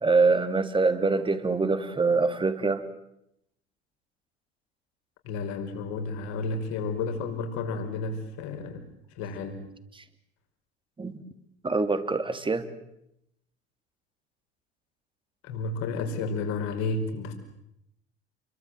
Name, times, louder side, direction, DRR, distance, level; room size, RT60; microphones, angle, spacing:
voice 1, 0.0-2.8 10.0-10.1 11.0-11.2 11.6-12.7, right 3 dB, 15° right, 9 dB, 2.7 m, -24 dB
voice 2, 5.2-8.8 9.2-9.6 15.4-17.3, left 3 dB, 55° left, 6 dB, 5.6 m, -31 dB
29.5 x 23.0 x 7.8 m, 0.80 s
figure-of-eight pair, 70°, 33 cm